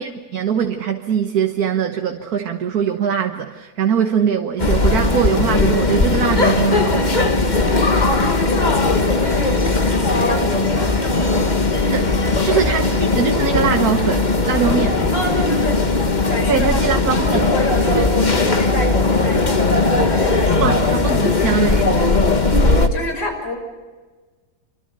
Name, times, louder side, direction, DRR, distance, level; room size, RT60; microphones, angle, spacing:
voice 1, 0.0-7.4 11.9-12.1 12.4-15.0 16.5-17.5 17.9-18.1 20.6-21.9, right 7 dB, 60° right, 5 dB, 1.7 m, -22 dB
sound 1, 4.6-22.9, left 3 dB, 25° left, 1.5 m, -18 dB
voice 2, 8.0-11.8 12.4-12.6 15.1-15.8 16.2-16.8 17.1-20.6 22.2-23.5, left 1 dB, 85° left, 3 dB, 6.6 m, -27 dB
28.0 x 25.0 x 6.8 m, 1.4 s
omnidirectional pair, 1.9 m